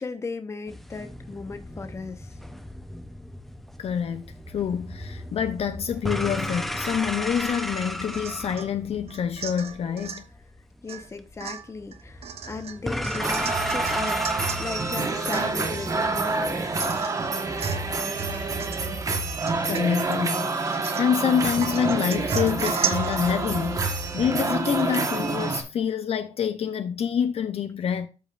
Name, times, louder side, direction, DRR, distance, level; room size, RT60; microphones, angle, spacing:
voice 1, 0.0-2.4 10.8-16.8, left 4 dB, 25° left, 1.0 m, -37 dB
sound 1, 0.7-16.8, equal, ahead, 0.7 m, -35 dB
voice 2, 3.8-10.2 19.5-28.1, left 8 dB, 55° left, 0.6 m, -27 dB
Domestic sounds home sounds / Chink clink / Drip, 8.1-8.7 9.1-10.3 10.9-11.1 11.4-14.6 15.0-15.1 15.3-15.8 16.3-16.4 16.8-17.2 17.6-17.9 18.2-18.9 19.5-20.2 20.7-21.2 21.6-24.9 25.2-25.3, right 7 dB, 55° right, 0.9 m, -36 dB
sound 2, 13.2-25.6, right 3 dB, 30° right, 1.2 m, -27 dB
13.5 x 5.1 x 2.5 m
wide cardioid pair, 170°, 12 cm